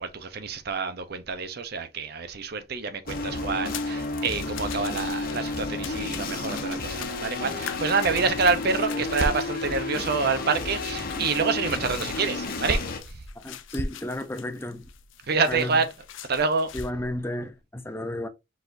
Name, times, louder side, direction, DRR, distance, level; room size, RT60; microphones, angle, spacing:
voice 1, 0.0-12.8 15.3-15.9 16.3-16.7, right 4 dB, 55° right, 0.7 m, -27 dB
sound 1, 3.1-13.0, left 2 dB, 50° left, 0.9 m, -32 dB
sound 2, 3.7-16.9, left 9 dB, 75° left, 0.5 m, -44 dB
voice 2, 13.4-14.9 15.5-15.8 16.7-18.3, left 1 dB, 10° left, 0.6 m, -33 dB
4.9 x 4.0 x 2.6 m
head